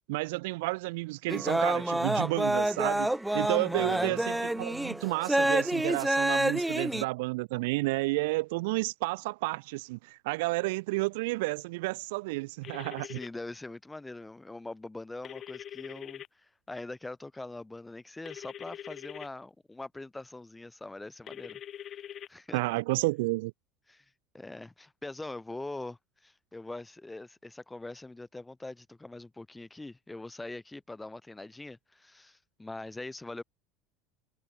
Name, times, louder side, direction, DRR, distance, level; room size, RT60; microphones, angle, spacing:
voice 1, 0.1-3.1 3.3-13.2 22.5-23.5, right 23 dB, 80° right, 0.6 m, -31 dB
sound 1, 1.3-7.0, right 1 dB, 5° right, 0.5 m, -28 dB
voice 2, 3.7-4.2 13.0-21.6 22.3-22.6 23.9-24.1 24.3-33.4, left 2 dB, 10° left, 3.4 m, -42 dB
sound 2, 12.6-13.3 15.2-16.3 18.2-19.3 21.3-22.3, left 10 dB, 45° left, 2.1 m, -43 dB
supercardioid pair, 95°, 0 cm